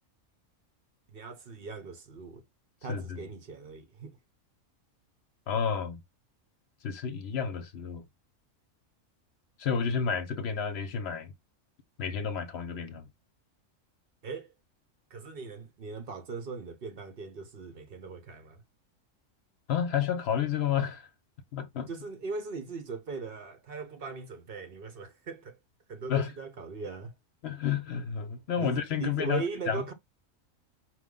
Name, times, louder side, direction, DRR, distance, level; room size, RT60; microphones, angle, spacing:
voice 1, 1.1-2.4 2.8-4.2 14.2-14.5 15.1-18.6 21.9-25.6 25.9-27.1 28.6-29.9, right 4 dB, 50° right, 0.9 m, -39 dB
voice 2, 2.9-3.3 5.5-6.0 6.8-8.0 9.6-11.3 12.0-13.1 19.7-21.1 21.5-21.9 26.1-26.3 27.4-29.9, left 7 dB, 60° left, 0.9 m, -31 dB
4.6 x 2.2 x 3.7 m
omnidirectional pair, 1.4 m